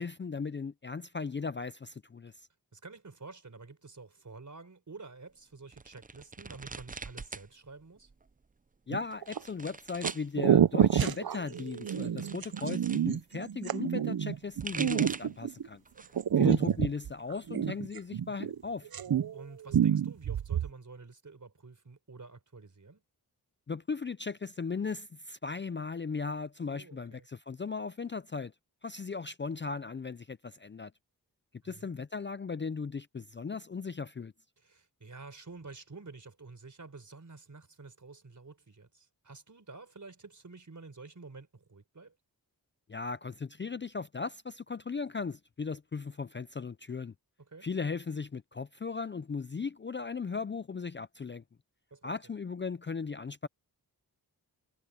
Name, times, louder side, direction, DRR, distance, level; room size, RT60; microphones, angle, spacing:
voice 1, 0.0-2.5 8.9-15.8 16.4-18.9 23.7-28.5 28.8-30.9 31.6-34.3 42.9-47.1 47.6-51.4 52.0-53.5, left 5 dB, 30° left, 0.4 m, -37 dB
voice 2, 2.7-8.1 12.2-12.7 19.3-23.0 26.7-27.3 31.6-31.9 34.6-42.1 47.5-47.7 51.9-52.1, right 3 dB, 50° right, 4.3 m, -50 dB
sound 1, 5.7-7.5 7.8-8.4 9.1-10.3 11.3-13.0 14.3-15.4 15.9-16.3 16.7-17.7, right 4 dB, 20° right, 0.5 m, -43 dB
sound 2, 8.9-9.4 10.0-10.1 10.4-15.7 16.2-18.6 18.9-19.4 19.7-20.7, right 9 dB, 65° right, 0.7 m, -28 dB
wide cardioid pair, 95°, 39 cm